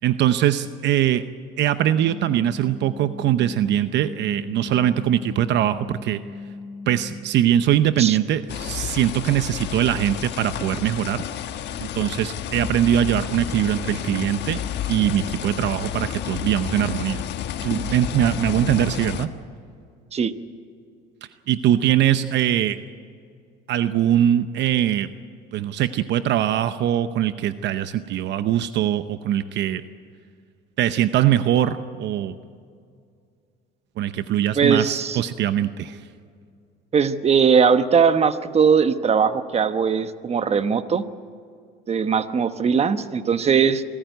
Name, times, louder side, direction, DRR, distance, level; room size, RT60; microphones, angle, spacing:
voice 1, 0.0-1.2 1.6-6.2 6.9-11.2 11.8-14.6 14.9-17.2 17.6-19.3 21.5-22.8 23.7-25.1 25.5-29.8 30.8-32.4 34.0-36.0, right 11 dB, 60° right, 12 dB, 0.8 m, -22 dB
sound 1, 1.8-7.2, left 3 dB, 80° left, 2.0 m, -38 dB
sound 2, 8.5-19.3, left 10 dB, 60° left, 1.3 m, -31 dB
voice 2, 34.6-35.3 36.9-41.0 41.9-43.8, right 6 dB, 30° right, 11 dB, 1.1 m, -20 dB
25.0 x 14.0 x 9.4 m, 2.3 s
supercardioid pair, 95°, 20 cm